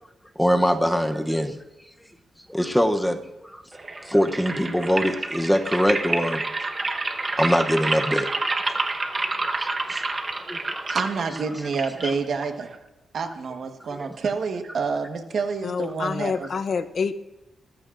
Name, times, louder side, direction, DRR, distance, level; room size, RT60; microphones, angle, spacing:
voice 1, 0.4-1.6 2.5-3.6 4.0-6.4 6.8-6.9 7.2-8.5 8.8-11.0 12.0-12.1 14.0-14.1, equal, ahead, 0.7 m, -24 dB
sound 1, 3.7-12.8, right 3 dB, 25° right, 1.1 m, -29 dB
voice 2, 10.9-12.8 13.1-16.5, right 5 dB, 50° right, 1.3 m, -28 dB
voice 3, 15.6-17.1, left 5 dB, 45° left, 0.6 m, -27 dB
27.5 x 14.5 x 2.5 m
wide cardioid pair, 150°, 0 cm